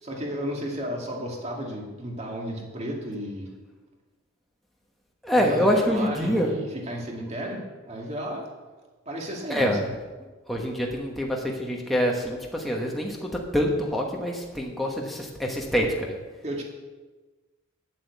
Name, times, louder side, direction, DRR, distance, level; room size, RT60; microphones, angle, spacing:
voice 1, 0.0-3.5 5.3-8.5 9.1-9.9 16.4-16.6, equal, 30° right, -1 dB, 2.2 m, -33 dB
voice 2, 5.2-6.5 9.5-9.8 10.5-16.1, equal, ahead, -1 dB, 1.2 m, -25 dB
8.7 x 7.6 x 8.4 m, 1.3 s
head